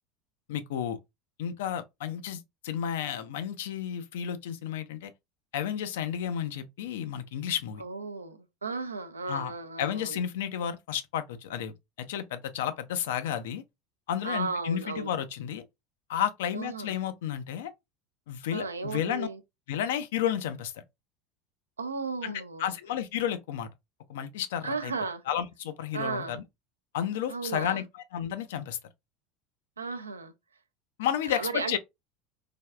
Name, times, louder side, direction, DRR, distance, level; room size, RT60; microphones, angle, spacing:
voice 1, 0.5-1.0 1.4-5.1 5.5-7.8 9.3-9.5 9.8-11.7 12.0-13.6 14.1-15.6 16.1-17.7 18.3-19.3 19.7-20.8 22.2-23.7 24.1-24.9 25.3-26.4 26.9-27.8 28.1-28.8 31.0-31.8, left 9 dB, 65° left, 0.4 m, -32 dB
voice 2, 7.8-10.2 14.2-15.1 16.5-16.9 18.5-19.4 21.8-22.7 24.6-25.2 25.9-26.4 27.3-27.8 29.8-30.3 31.2-31.8, right 4 dB, 80° right, 0.4 m, -35 dB
3.3 x 2.3 x 2.3 m
figure-of-eight pair, 75°, 0 cm